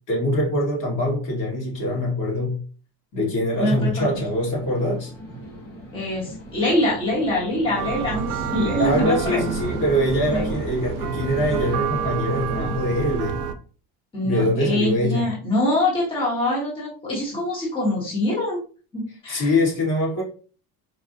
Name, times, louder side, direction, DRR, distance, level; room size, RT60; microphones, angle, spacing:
voice 1, 0.1-2.6 3.1-5.1 8.8-13.5 14.2-15.3 19.3-20.2, left 1 dB, 55° left, 1.8 m, -23 dB
sound 1, 3.5-13.0, equal, 35° left, 1.1 m, -36 dB
voice 2, 3.6-4.2 5.9-9.4 10.3-10.6 14.1-18.6 18.9-19.5, left 1 dB, 15° left, 1.2 m, -24 dB
sound 2, 7.8-13.5, right 8 dB, 85° right, 0.6 m, -29 dB
4.7 x 2.4 x 2.7 m
cardioid pair, 165°, 38 cm